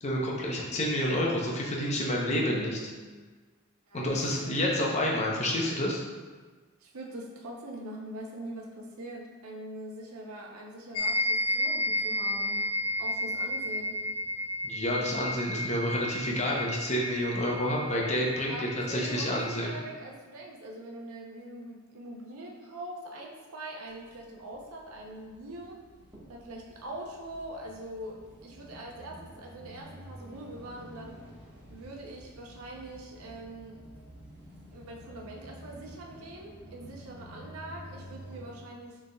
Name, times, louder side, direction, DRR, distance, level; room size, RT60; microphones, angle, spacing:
voice 1, 0.0-2.8 3.9-6.0 14.6-19.7, left 1 dB, 30° left, -2 dB, 0.7 m, -29 dB
voice 2, 2.4-3.1 3.9-4.2 4.4-4.6 6.8-12.6 13.0-14.0 18.5-25.8 26.3-31.2 31.7-33.8 34.7-39.0, right 1 dB, 80° right, -1 dB, 0.6 m, -43 dB
sound 1, 11.0-19.6, left 1 dB, 85° left, 0.4 m, -32 dB
sound 2, 23.9-38.6, equal, 10° right, 1.2 m, -50 dB
6.4 x 3.4 x 2.2 m, 1.4 s
head